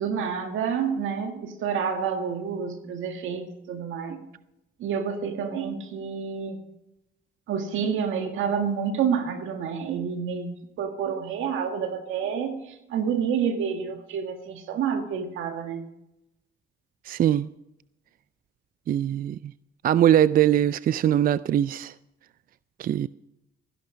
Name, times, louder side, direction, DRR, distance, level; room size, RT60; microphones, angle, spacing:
voice 1, 0.0-4.3 4.8-6.6 7.5-15.9, right 7 dB, 80° right, 1.9 m, -29 dB
voice 2, 17.1-17.5 18.9-19.5 19.8-21.9 22.8-23.1, right 11 dB, 45° right, 0.4 m, -22 dB
15.5 x 11.0 x 5.0 m
cardioid pair, 90°, 20 cm